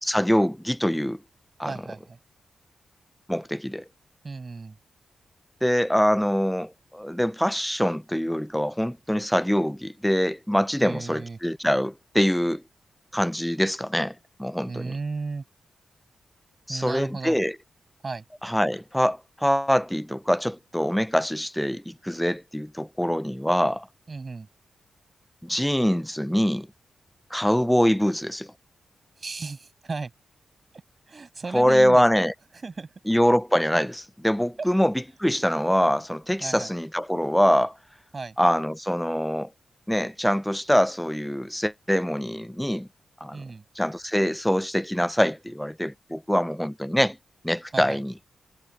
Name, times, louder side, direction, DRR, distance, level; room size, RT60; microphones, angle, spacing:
voice 1, 0.0-1.2 1.6-1.7 3.3-3.8 5.6-12.6 13.1-14.9 16.7-17.6 18.4-23.9 25.4-26.7 27.3-28.5 31.5-32.3 33.1-34.9 35.2-37.8 38.4-39.5 39.9-42.9 43.2-43.4 43.8-47.2 47.4-48.1, equal, 5° left, 0.4 m, -24 dB
voice 2, 1.6-2.2 4.2-4.8 10.8-11.4 14.7-15.4 16.7-17.4 18.0-18.2 24.1-24.5 29.2-30.1 31.1-32.0 32.6-32.9 34.6-34.7 36.4-36.7 38.1-38.3 43.3-43.6 47.7-48.0, right 4 dB, 45° right, 6.6 m, -34 dB
cardioid pair, 50°, 0 cm